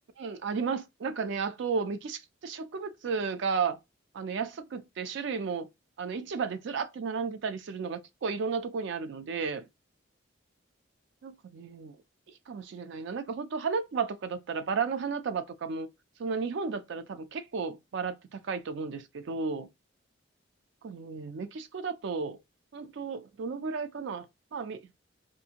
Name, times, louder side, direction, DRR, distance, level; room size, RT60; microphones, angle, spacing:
voice 1, 0.2-3.8 4.1-5.7 6.0-9.7 11.2-12.0 12.5-15.9 16.2-19.7 20.8-22.4 22.7-24.3 24.5-24.8, right 5 dB, 65° right, 0.4 m, -33 dB
2.6 x 2.4 x 2.8 m
head